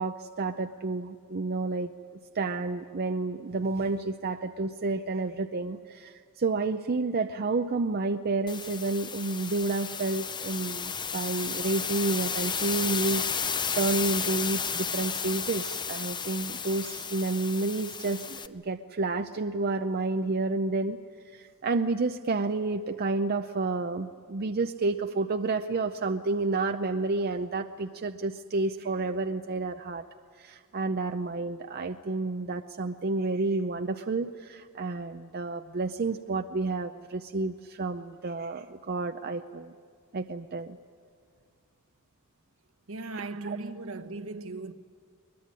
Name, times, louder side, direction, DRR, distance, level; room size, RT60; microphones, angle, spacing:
voice 1, 0.0-1.9 2.3-21.0 21.2-30.1 30.3-39.7 40.1-40.8 43.4-43.6, right 3 dB, 45° right, 0.6 m, -30 dB
sound 1, 8.5-18.5, left 6 dB, 20° left, 0.7 m, -33 dB
voice 2, 42.9-44.7, right 3 dB, 65° right, 1.2 m, -37 dB
22.0 x 22.0 x 9.8 m
head